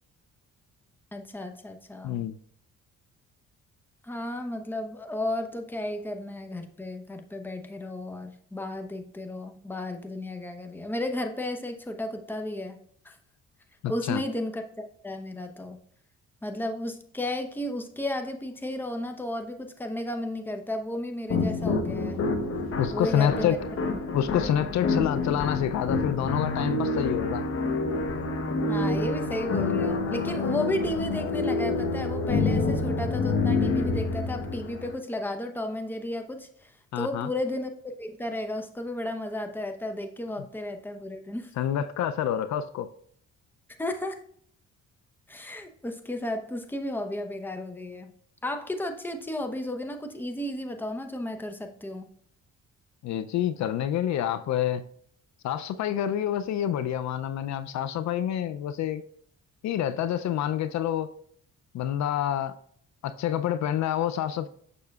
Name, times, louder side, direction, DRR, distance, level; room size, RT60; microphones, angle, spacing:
voice 1, 1.1-2.2 4.0-12.8 13.0-13.2 13.9-14.6 15.0-15.8 16.4-22.2 22.9-23.6 28.7-41.5 43.8-44.2 45.3-48.1 48.4-52.1, left 1 dB, 5° left, 0.7 m, -33 dB
voice 2, 2.0-2.4 13.8-14.2 22.8-23.6 24.1-27.4 36.9-37.3 41.6-42.9 53.0-54.8 55.4-59.0 59.6-61.1 61.7-62.6 63.0-64.5, left 10 dB, 65° left, 0.4 m, -27 dB
sound 1, 21.3-35.0, left 3 dB, 50° left, 0.9 m, -28 dB
6.8 x 6.3 x 2.3 m
cardioid pair, 90°, 30 cm